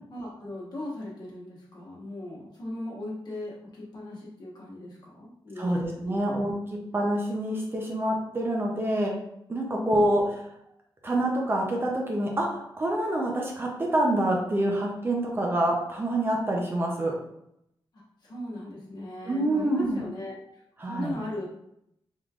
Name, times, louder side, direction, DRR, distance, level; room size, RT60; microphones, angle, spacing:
voice 1, 0.1-6.4 9.7-10.1 17.9-21.5, left 1 dB, 50° left, -5 dB, 1.2 m, -38 dB
voice 2, 5.6-6.5 6.9-9.1 9.5-10.5 11.0-17.1 19.3-20.0 20.8-21.2, right 1 dB, 25° right, -1 dB, 0.5 m, -26 dB
3.6 x 3.1 x 2.4 m, 0.77 s
wide cardioid pair, 165°, 9 cm